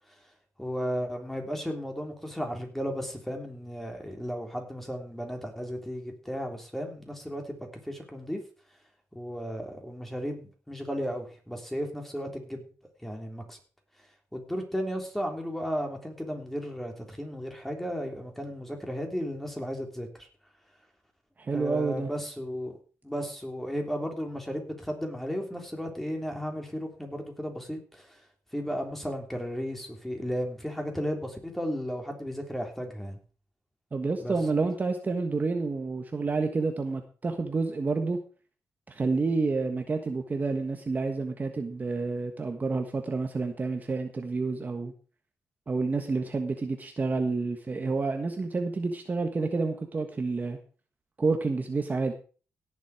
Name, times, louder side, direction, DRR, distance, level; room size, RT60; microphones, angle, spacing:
voice 1, 0.6-8.4 9.1-12.7 13.0-13.6 14.3-20.3 21.5-22.8 23.0-28.2 28.5-33.2 34.2-34.4, equal, 5° left, 3 dB, 3.4 m, -34 dB
voice 2, 21.4-22.1 33.9-38.2 38.9-44.9 45.7-50.6 51.2-52.1, right 3 dB, 30° right, 5 dB, 1.4 m, -29 dB
17.0 x 7.5 x 4.9 m, 0.38 s
cardioid pair, 105°, 5 cm